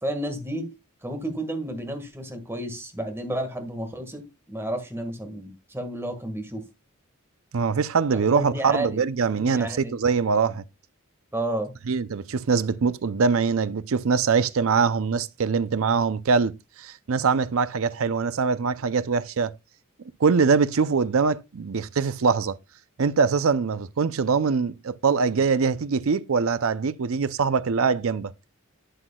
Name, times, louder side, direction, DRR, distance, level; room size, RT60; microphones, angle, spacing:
voice 1, 0.0-0.7 1.0-6.6 8.1-9.0 9.3-9.9 11.3-11.7, right 1 dB, 10° right, 1.7 m, -31 dB
voice 2, 7.5-10.6 11.9-19.5 20.2-22.6 23.0-28.3, right 5 dB, 65° right, 0.5 m, -23 dB
11.5 x 8.0 x 2.3 m
head